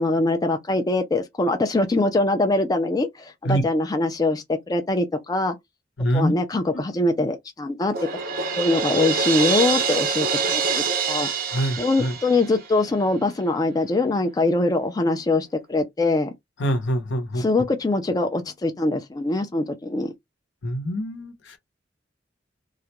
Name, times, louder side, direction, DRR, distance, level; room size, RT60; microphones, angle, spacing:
voice 1, 0.0-5.6 6.1-7.9 8.6-11.3 11.8-16.3 17.4-20.1, left 2 dB, 20° left, 0.4 m, -23 dB
voice 2, 6.0-6.3 11.5-12.1 16.6-17.4 20.6-21.6, right 1 dB, 75° left, 0.8 m, -25 dB
Crash cymbal, 7.9-12.9, right 5 dB, 50° right, 0.6 m, -25 dB
2.4 x 2.1 x 2.8 m
head